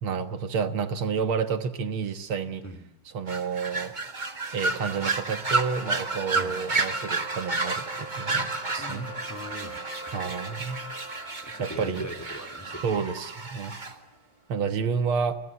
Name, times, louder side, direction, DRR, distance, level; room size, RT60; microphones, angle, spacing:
voice 1, 0.0-2.6 3.1-3.9 4.5-9.1 10.1-10.8 11.6-12.1 12.8-13.7 14.5-15.4, right 6 dB, 70° right, 9 dB, 2.1 m, -30 dB
sound 1, 3.3-13.9, right 3 dB, 25° right, 1.5 m, -31 dB
sound 2, 4.1-14.2, right 2 dB, 30° left, 4.6 m, -43 dB
voice 2, 8.8-9.8 10.1-10.5 11.4-13.1, equal, 5° left, 10 dB, 2.6 m, -41 dB
29.0 x 22.0 x 8.7 m, 0.79 s
omnidirectional pair, 2.4 m